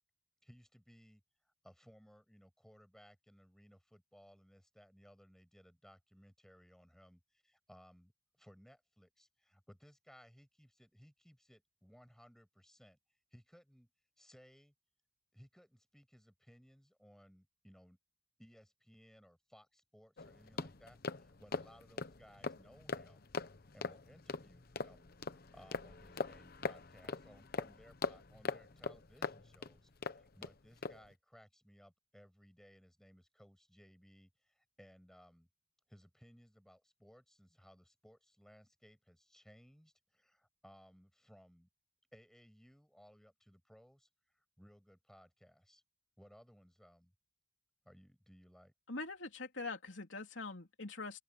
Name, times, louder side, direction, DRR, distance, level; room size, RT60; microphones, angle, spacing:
voice 1, 0.4-8.1 8.4-13.0 13.3-13.9 14.2-14.7 15.3-18.0 18.4-23.3 23.7-35.5 35.9-41.7 42.1-45.8 46.2-47.1 47.8-48.7, equal, ahead, 6.3 m, -62 dB
sound 1, 20.2-30.5 30.8-31.1, left 4 dB, 50° left, 1.0 m, -42 dB
voice 2, 48.9-51.2, left 3 dB, 70° left, 3.4 m, -43 dB
open air
head